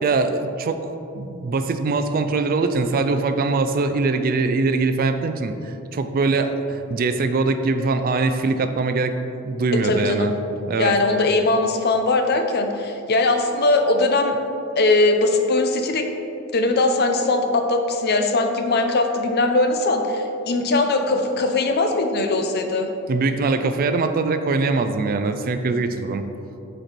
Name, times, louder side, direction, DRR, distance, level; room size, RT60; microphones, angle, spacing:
voice 1, 0.0-0.9 1.1-9.2 9.4-10.3 10.7-11.0 23.1-26.2, right 3 dB, 45° right, 8 dB, 0.4 m, -22 dB
voice 2, 9.7-10.3 10.8-14.4 14.8-16.1 16.5-22.9, left 2 dB, 50° left, 5 dB, 0.6 m, -20 dB
7.8 x 4.4 x 4.4 m, 2.7 s
head